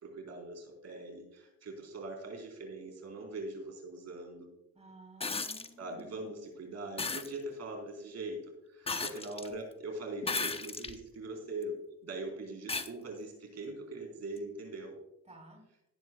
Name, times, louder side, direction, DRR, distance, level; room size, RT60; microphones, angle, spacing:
voice 1, 0.0-4.5 5.8-8.4 8.7-15.0, right 2 dB, 60° right, 2 dB, 4.0 m, -42 dB
voice 2, 4.7-6.2 8.9-9.1 15.2-15.6, right 2 dB, 20° right, 1 dB, 3.0 m, -52 dB
sound 1, 5.2-5.7 7.0-7.3 8.9-9.5 10.2-11.0 11.6-11.7 12.7-12.9 14.4-14.5, left 4 dB, 20° left, 0.8 m, -35 dB
18.5 x 9.3 x 2.3 m, 0.84 s
cardioid pair, 90°, 30 cm